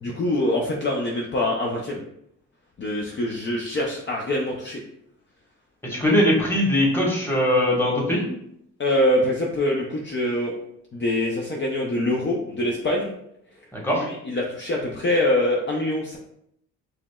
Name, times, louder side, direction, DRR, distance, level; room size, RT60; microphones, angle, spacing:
voice 1, 0.0-2.0 2.8-4.8 8.8-10.5 10.9-13.1 13.9-16.2, left 1 dB, 40° left, -2 dB, 0.7 m, -24 dB
voice 2, 5.8-8.3 13.7-14.1, left 1 dB, 5° left, -4 dB, 1.5 m, -21 dB
5.0 x 3.0 x 2.3 m, 0.75 s
cardioid pair, 90°, 30 cm